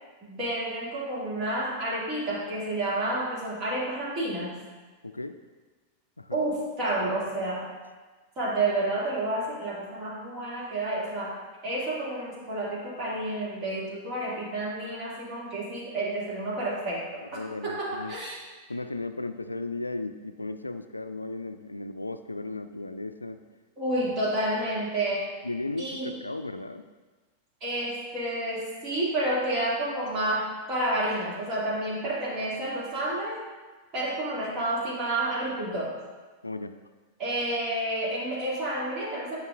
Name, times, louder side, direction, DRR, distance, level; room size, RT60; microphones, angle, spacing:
voice 1, 0.2-4.6 6.3-7.7 8.4-11.4 11.6-18.4 23.8-25.3 25.8-26.1 27.6-33.4 33.9-36.0 37.2-39.4, right 1 dB, 35° right, -5 dB, 2.1 m, -30 dB
voice 2, 5.0-5.4 6.2-6.4 17.3-18.1 18.7-23.4 25.4-26.8 36.4-36.8, left 2 dB, 85° left, 10 dB, 0.3 m, -35 dB
9.3 x 5.7 x 2.4 m, 1.3 s
figure-of-eight pair, 90°, 0 cm